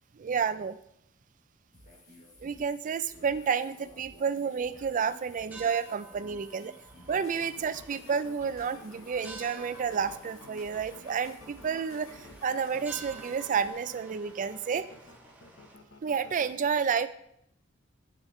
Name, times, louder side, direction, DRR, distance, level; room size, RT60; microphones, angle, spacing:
voice 1, 0.2-0.8 2.4-6.7 7.1-14.9 16.0-17.1, right 6 dB, 40° right, 13 dB, 0.4 m, -30 dB
sound 1, 1.7-13.7, left 1 dB, 50° left, 2.5 m, -54 dB
sound 2, 4.9-15.8, right 3 dB, 10° right, 1.2 m, -51 dB
sound 3, 7.1-16.5, left 2 dB, 80° left, 0.9 m, -52 dB
8.0 x 6.6 x 3.1 m, 0.75 s
head